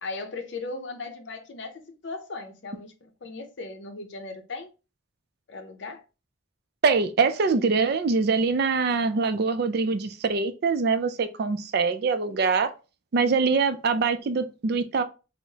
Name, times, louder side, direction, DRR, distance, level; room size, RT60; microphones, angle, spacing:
voice 1, 0.0-4.7 5.5-6.0, left 3 dB, 60° left, 0.6 m, -37 dB
voice 2, 6.8-12.7 13.1-15.0, right 4 dB, 55° right, 0.4 m, -24 dB
4.6 x 2.1 x 2.7 m
head